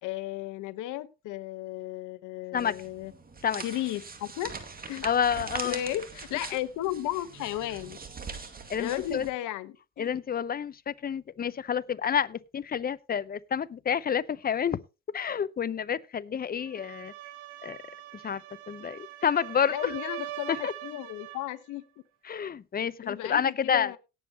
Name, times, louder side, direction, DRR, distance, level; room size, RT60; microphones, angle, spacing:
voice 1, 0.0-3.1 3.6-4.5 4.9-5.0 5.6-8.0 8.8-10.1 19.7-21.8 23.0-24.0, left 14 dB, 60° left, 1.1 m, -34 dB
sound 1, 2.6-9.3, right 4 dB, 25° right, 2.2 m, -42 dB
voice 2, 5.0-5.8 8.7-9.3 10.0-14.8 15.1-17.1 17.6-17.8 18.1-19.9 20.5-20.7 22.2-23.9, left 8 dB, 25° left, 0.7 m, -29 dB
sound 2, 16.6-21.5, right 14 dB, 80° right, 1.6 m, -42 dB
18.0 x 7.9 x 2.9 m
hypercardioid pair, 65°, 34 cm